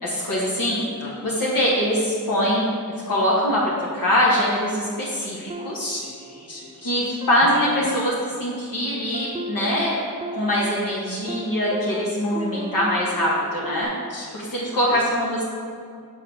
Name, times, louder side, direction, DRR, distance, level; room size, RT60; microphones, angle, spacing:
voice 1, 0.0-0.9 1.2-6.0 6.8-8.1 8.4-10.0 10.3-13.9 14.5-15.5, equal, 70° left, -6 dB, 1.2 m, -23 dB
voice 2, 1.0-1.3 5.8-7.2 7.7-7.9 14.1-15.0, left 1 dB, 45° left, -4 dB, 1.6 m, -38 dB
sound 1, 5.5-6.8 7.2-13.8, right 4 dB, 20° right, 0.4 m, -36 dB
6.2 x 4.1 x 5.2 m, 2.3 s
cardioid pair, 50°, 35 cm